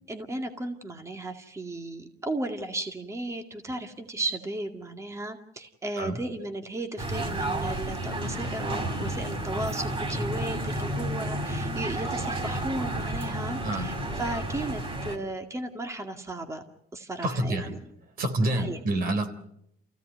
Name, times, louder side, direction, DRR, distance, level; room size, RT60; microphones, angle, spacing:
voice 1, 0.1-16.6 16.9-17.8 18.5-18.8, right 2 dB, 15° right, 5 dB, 2.1 m, -35 dB
sound 1, 7.0-15.2, right 1 dB, 35° right, 4.9 m, -31 dB
voice 2, 17.2-17.8 18.2-19.3, right 1 dB, 60° right, 7 dB, 4.0 m, -27 dB
28.0 x 16.5 x 9.3 m, 0.77 s
cardioid pair, 110°, 17 cm